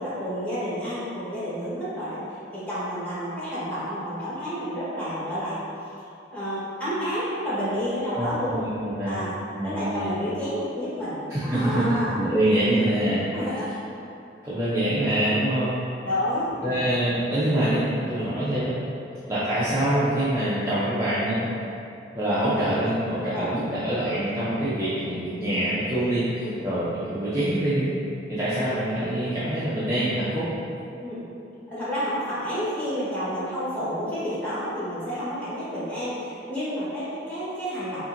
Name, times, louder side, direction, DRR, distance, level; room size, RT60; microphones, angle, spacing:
voice 1, 0.0-5.6 6.3-8.7 9.0-9.3 9.6-12.2 13.3-13.6 16.0-16.8 23.3-23.5 26.4-26.6 31.0-31.2 31.7-38.0, equal, 10° left, -12 dB, 1.3 m, -30 dB
voice 2, 8.1-9.2 9.5-10.1 11.3-13.2 14.4-15.8 16.6-18.8 19.3-21.5 22.1-27.9 28.3-30.5, right 1 dB, 15° right, -12 dB, 0.5 m, -25 dB
5.4 x 2.5 x 2.6 m, 2.7 s
head